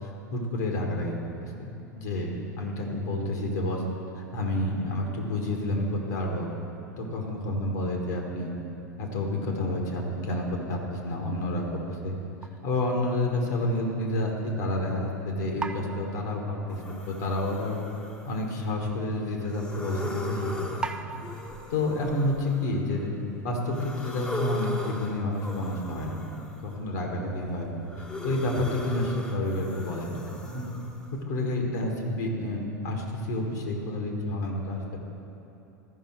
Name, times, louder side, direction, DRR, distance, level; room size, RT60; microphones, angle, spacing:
voice 1, 0.0-3.8 4.1-6.5 7.0-8.5 9.0-11.6 12.0-12.2 12.6-17.8 18.2-20.8 21.1-21.2 21.7-23.1 23.4-27.7 28.2-30.7 31.1-35.0, left 1 dB, 60° left, 1 dB, 1.5 m, -29 dB
sound 1, 12.4-12.9 13.5-13.6 15.6-17.3 17.7-17.8 18.1-18.2 18.9-19.0 20.8-22.5, right 3 dB, 10° right, 0.3 m, -39 dB
sound 2, 16.7-18.9 19.4-23.1 23.7-26.8 27.3-31.1, left 2 dB, 10° left, 0.8 m, -39 dB
13.5 x 5.5 x 4.5 m, 3.0 s
figure-of-eight pair, 85°, 10 cm